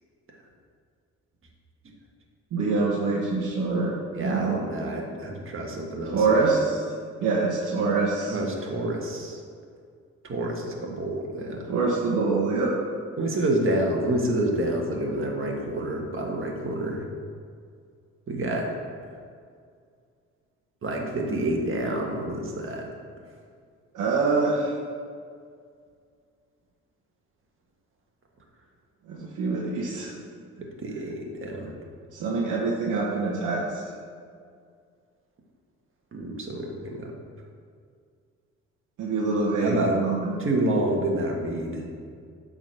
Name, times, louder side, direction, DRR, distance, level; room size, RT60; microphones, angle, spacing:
voice 1, 2.5-4.6 6.1-6.7 7.2-8.4 11.7-12.7 23.9-24.7 29.1-30.1 32.1-33.7 39.0-40.4, right 3 dB, 80° right, -4 dB, 1.3 m, -25 dB
voice 2, 4.1-6.4 8.3-9.4 10.2-11.7 13.2-17.0 18.3-18.7 20.8-22.9 30.6-31.7 36.1-37.1 39.6-39.9 40.4-41.9, right 1 dB, 45° right, 0 dB, 1.6 m, -28 dB
8.7 x 4.0 x 6.5 m, 2.1 s
cardioid pair, 90°, 30 cm